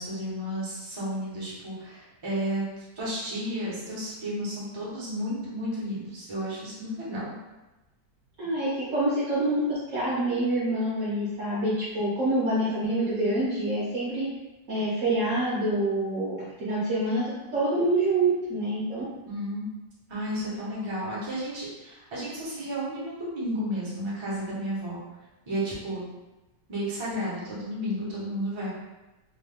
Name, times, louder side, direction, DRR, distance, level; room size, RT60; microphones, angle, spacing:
voice 1, 0.0-2.6 3.0-7.4 19.3-19.6 20.1-25.0 25.5-26.0 26.7-28.7, equal, 25° right, -7 dB, 0.6 m, -32 dB
voice 2, 8.4-14.3 14.7-17.2 17.5-19.0, right 1 dB, 60° right, -8 dB, 0.9 m, -26 dB
3.0 x 2.2 x 3.4 m, 1.1 s
omnidirectional pair, 1.9 m